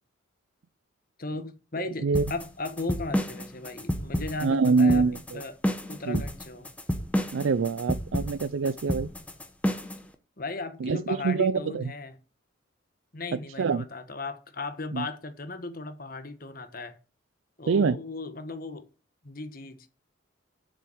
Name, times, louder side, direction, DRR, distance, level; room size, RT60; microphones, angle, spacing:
voice 1, 1.2-5.1 5.3-5.5 5.9-6.7 10.4-12.1 13.1-17.0 17.6-18.8 19.2-19.9, left 3 dB, 45° left, 1.4 m, -36 dB
voice 2, 1.8-2.3 4.4-5.4 6.1-6.2 7.3-9.1 10.8-11.8 13.6-13.8 14.9-15.0 17.7-18.0, right 4 dB, 70° right, 0.4 m, -25 dB
sound 1, 2.1-10.0, equal, 5° left, 1.0 m, -30 dB
7.4 x 6.9 x 7.9 m
head